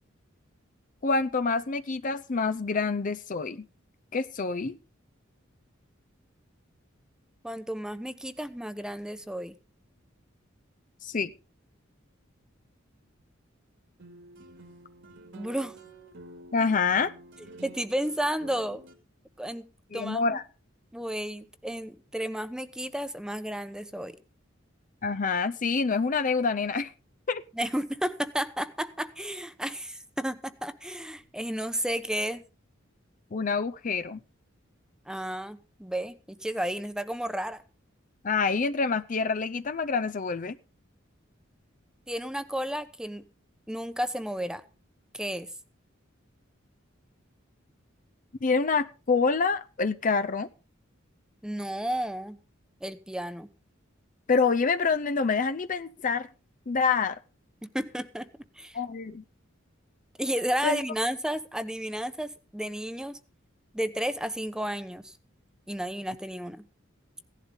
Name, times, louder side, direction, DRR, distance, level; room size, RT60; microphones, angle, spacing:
voice 1, 1.0-3.7 4.1-4.8 11.0-11.3 16.5-17.1 19.9-20.4 25.0-26.9 27.3-27.4 33.3-34.2 38.2-40.6 48.4-50.5 54.3-56.3 56.7-57.2 58.7-59.2 60.6-60.8, left 4 dB, 40° left, 11 dB, 0.6 m, -26 dB
voice 2, 7.4-9.5 15.3-15.7 17.6-18.8 19.4-19.7 19.9-20.2 20.9-24.2 27.5-32.4 35.1-37.6 42.1-43.2 43.7-44.6 45.1-45.5 51.4-52.4 52.8-53.5 57.6-58.3 58.6-58.8 60.2-63.2 63.7-65.1 65.7-66.6, equal, 5° right, 12 dB, 0.9 m, -32 dB
sound 1, 14.0-18.9, right 2 dB, 60° right, 2.4 m, -49 dB
16.5 x 11.5 x 3.9 m, 0.33 s
head